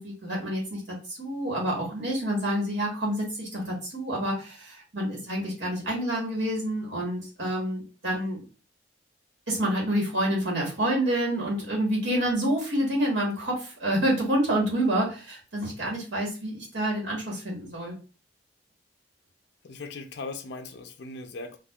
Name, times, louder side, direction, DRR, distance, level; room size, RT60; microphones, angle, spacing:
voice 1, 0.0-8.4 9.5-18.0, right 1 dB, 80° right, 1.3 m, -28 dB
voice 2, 19.6-21.6, left 3 dB, 65° left, 0.4 m, -38 dB
4.4 x 2.4 x 2.3 m
head